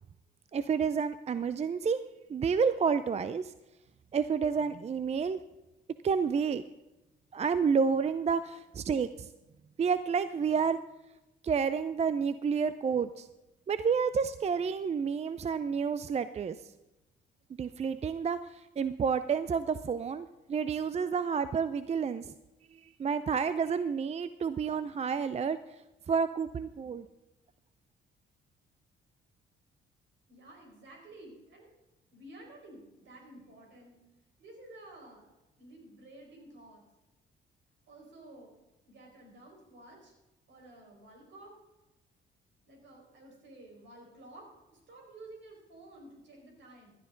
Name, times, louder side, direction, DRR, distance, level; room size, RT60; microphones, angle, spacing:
voice 1, 0.5-2.0 2.3-3.5 4.1-5.4 6.0-6.6 7.3-9.3 9.8-10.8 11.4-13.3 13.7-16.7 17.6-22.3 22.7-27.1, right 6 dB, 35° right, 13 dB, 0.5 m, -30 dB
voice 2, 30.3-31.7 32.1-34.0 34.4-35.3 35.6-36.8 37.9-38.5 38.8-40.1 40.5-41.5 42.7-46.9, right 1 dB, 70° right, 0 dB, 5.0 m, -52 dB
16.0 x 12.0 x 3.9 m, 1.0 s
cardioid pair, 90°, 20 cm